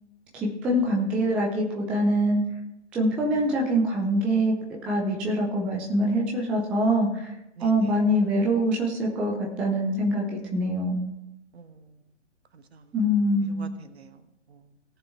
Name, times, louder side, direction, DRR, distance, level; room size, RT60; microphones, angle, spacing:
voice 1, 0.6-2.4 2.9-4.5 4.8-7.3 7.6-11.1 12.9-13.8, equal, 5° right, -2 dB, 0.4 m, -24 dB
voice 2, 7.6-8.0 11.5-11.9 12.5-13.0 13.4-14.2 14.5-14.7, right 5 dB, 60° right, 10 dB, 1.3 m, -46 dB
18.0 x 6.7 x 3.4 m, 0.85 s
figure-of-eight pair, 125°, 36 cm